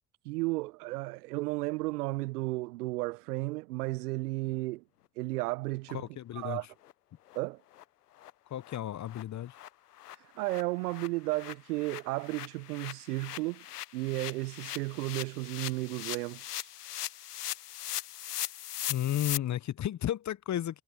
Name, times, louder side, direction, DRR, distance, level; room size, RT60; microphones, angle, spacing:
voice 1, 0.2-4.8 5.2-6.0 6.3-6.7 7.3-7.6 10.4-13.7 13.9-16.7, right 21 dB, 75° right, 1.0 m, -33 dB
voice 2, 5.9-6.6 8.5-9.5 18.9-20.8, left 11 dB, 40° left, 0.9 m, -33 dB
sound 1, 6.4-6.5 6.8-6.9 7.3-7.4 7.7-7.8 8.2-8.3 8.6-8.8 9.1-9.2 9.5-19.4, left 13 dB, 90° left, 0.9 m, -40 dB
hypercardioid pair, 60°, 46 cm